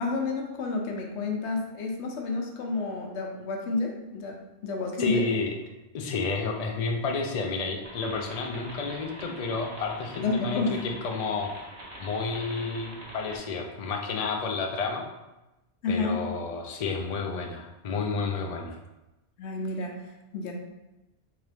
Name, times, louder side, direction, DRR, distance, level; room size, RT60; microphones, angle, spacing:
voice 1, 0.0-5.2 10.2-10.9 15.8-16.2 19.4-20.0 20.3-20.5, left 3 dB, 80° left, 1 dB, 1.0 m, -30 dB
voice 2, 5.0-5.6 5.9-11.5 12.0-15.1 15.9-18.8, left 4 dB, 60° left, 2 dB, 0.4 m, -31 dB
sound 1, 7.8-13.4, equal, 35° right, 0.9 m, -44 dB
3.6 x 2.9 x 3.3 m, 0.99 s
omnidirectional pair, 1.2 m